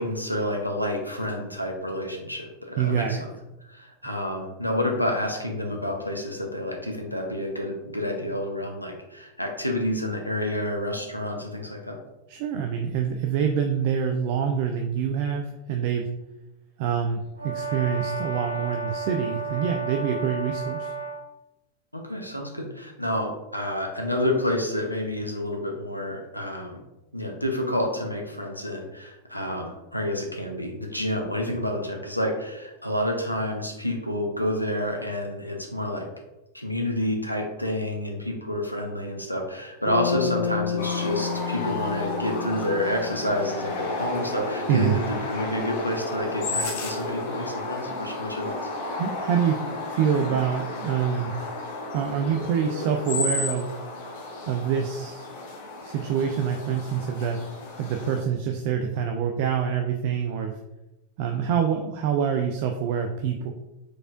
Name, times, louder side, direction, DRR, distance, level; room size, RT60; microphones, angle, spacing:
voice 1, 0.0-3.3 3.6-12.0 21.9-26.8 27.1-36.1 36.5-48.6, left 1 dB, 90° left, 1 dB, 0.8 m, -29 dB
voice 2, 2.8-3.2 12.3-16.1 16.8-20.9 44.7-45.0 49.0-49.6 49.9-51.3 51.9-53.7 54.5-55.3 55.8-57.4 57.8-60.5 61.2-63.5, right 7 dB, 50° right, 4 dB, 0.4 m, -26 dB
Brass instrument, 17.4-21.3, right 4 dB, 80° right, 0.7 m, -32 dB
Bass guitar, 39.9-43.9, left 6 dB, 30° left, 1.5 m, -31 dB
sound 1, 40.8-58.2, left 2 dB, 55° left, 1.1 m, -33 dB
4.7 x 4.2 x 2.5 m, 0.96 s
figure-of-eight pair, 90°, 0 cm